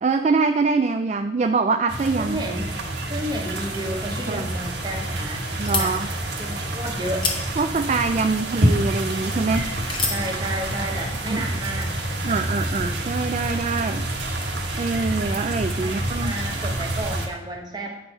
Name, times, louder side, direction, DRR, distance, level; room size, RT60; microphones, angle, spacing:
voice 1, 0.0-2.5 4.3-4.5 5.6-6.1 7.6-9.7 11.3-11.5 12.2-14.0 14.8-16.4, right 4 dB, 40° right, 7 dB, 0.3 m, -24 dB
sound 1, 1.9-17.3, right 1 dB, 75° right, 1.3 m, -27 dB
voice 2, 2.2-2.8 3.1-5.4 5.8-6.0 6.4-7.3 10.0-11.9 15.8-18.0, right 1 dB, 25° right, 1 dB, 1.1 m, -31 dB
sound 2, 4.4-10.3, left 4 dB, 25° left, 1.1 m, -33 dB
9.2 x 4.5 x 5.4 m, 0.91 s
head